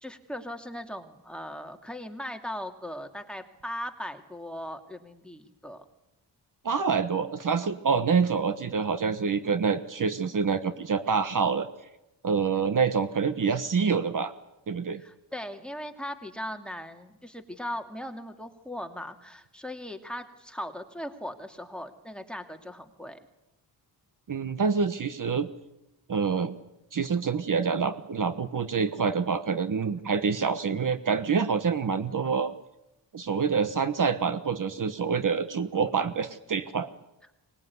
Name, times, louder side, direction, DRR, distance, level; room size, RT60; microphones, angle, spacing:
voice 1, 0.0-5.8 15.0-23.2, left 1 dB, ahead, 4 dB, 2.4 m, -39 dB
voice 2, 6.6-11.7 12.2-14.3 14.7-15.0 24.3-25.5 26.1-26.6 26.9-32.5 33.1-36.9, right 5 dB, 45° right, 11 dB, 1.3 m, -26 dB
24.5 x 20.5 x 9.5 m, 0.93 s
wide cardioid pair, 130°, 43 cm